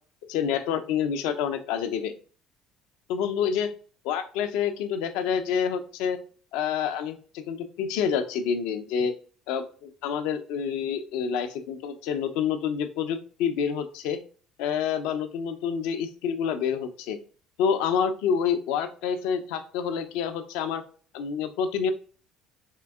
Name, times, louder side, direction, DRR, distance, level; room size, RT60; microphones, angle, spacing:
voice 1, 0.3-2.1 3.1-3.7 4.0-6.2 6.5-9.1 9.5-14.2 14.6-17.2 17.6-20.8 21.1-21.9, left 7 dB, 75° left, 8 dB, 0.5 m, -28 dB
3.6 x 3.4 x 3.4 m, 0.41 s
hypercardioid pair, 60°, 0 cm